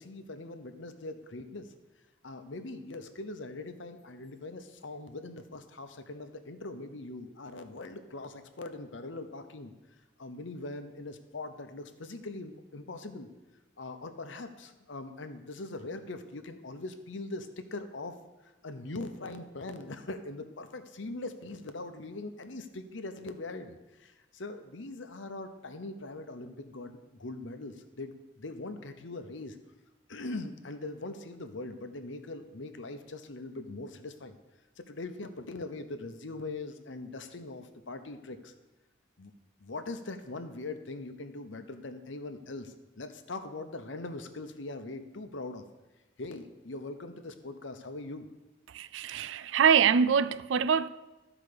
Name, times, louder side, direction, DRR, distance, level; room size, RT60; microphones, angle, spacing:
voice 1, 0.0-1.7 2.2-9.7 10.2-13.3 13.8-18.2 18.6-29.6 30.1-34.3 34.8-38.5 39.2-39.3 39.6-45.6 46.2-48.3, left 2 dB, 80° left, 0.9 m, -41 dB
voice 2, 48.7-50.9, right 7 dB, 80° right, 0.4 m, -24 dB
12.5 x 4.9 x 6.8 m
head